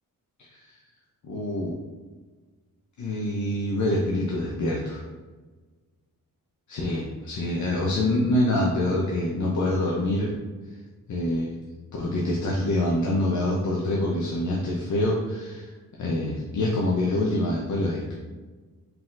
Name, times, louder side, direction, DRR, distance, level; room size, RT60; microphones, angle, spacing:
voice 1, 1.2-1.8 3.0-5.0 6.7-10.3 11.1-11.6 11.9-15.7 16.0-18.1, left 1 dB, 55° left, -3 dB, 0.6 m, -25 dB
4.6 x 3.7 x 2.5 m, 1.3 s
wide cardioid pair, 145°, 35 cm